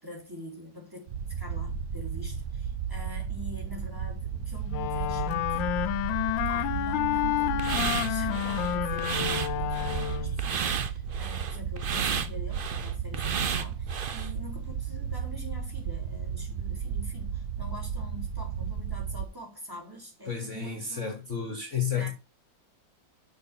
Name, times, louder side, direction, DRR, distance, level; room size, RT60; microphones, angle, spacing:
voice 1, 0.0-5.7 6.3-21.2 21.9-22.1, equal, 10° right, 3.5 m, -45 dB
sound 1, 1.1-19.3, right 7 dB, 55° right, 0.9 m, -34 dB
Wind instrument woodwind instrument, 4.7-10.4, left 13 dB, 85° left, 1.4 m, -29 dB
sound 2, 7.6-14.3, right 7 dB, 80° right, 0.4 m, -32 dB
voice 2, 20.3-22.1, left 7 dB, 45° left, 1.6 m, -31 dB
6.6 x 6.1 x 5.9 m
omnidirectional pair, 2.0 m